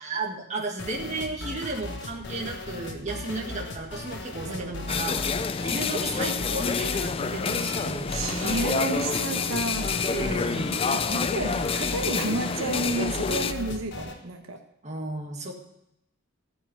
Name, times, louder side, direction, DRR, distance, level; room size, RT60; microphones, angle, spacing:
voice 1, 0.0-5.3 5.6-8.1 10.1-10.8 14.8-15.5, right 2 dB, 35° right, 1 dB, 1.8 m, -34 dB
sound 1, 0.8-14.2, left 2 dB, 60° left, 1.6 m, -37 dB
sound 2, 4.9-13.5, left 5 dB, 25° left, 0.3 m, -28 dB
voice 2, 8.1-10.1 10.4-14.6, right 3 dB, 90° right, 5 dB, 1.3 m, -31 dB
14.5 x 5.4 x 9.4 m, 0.82 s
head